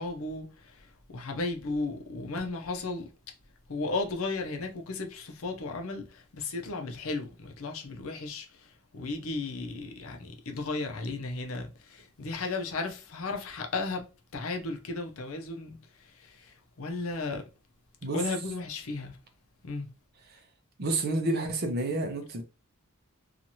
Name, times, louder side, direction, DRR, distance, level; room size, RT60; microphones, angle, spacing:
voice 1, 0.0-3.1 3.7-14.0 14.3-17.4 18.1-19.2 19.6-19.9, left 3 dB, 65° left, 0.6 m, -35 dB
voice 2, 20.8-22.4, right 2 dB, 45° right, 0.6 m, -29 dB
2.8 x 2.4 x 2.8 m
head